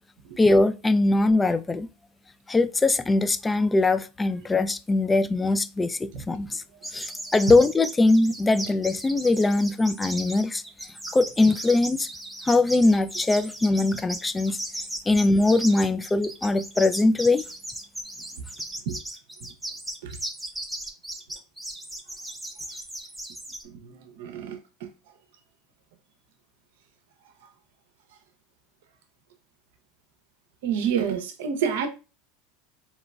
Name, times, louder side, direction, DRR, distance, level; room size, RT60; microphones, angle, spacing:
voice 1, 0.4-1.9 2.5-6.6 6.9-10.6 11.1-12.1 12.4-14.6 15.1-17.4, left 2 dB, 15° left, 0.3 m, -21 dB
sound 1, 6.8-23.6, right 1 dB, 5° right, 0.8 m, -36 dB
voice 2, 23.6-24.9 30.6-31.9, right 7 dB, 70° right, 0.6 m, -29 dB
3.8 x 2.9 x 2.2 m
hypercardioid pair, 85°, 0 cm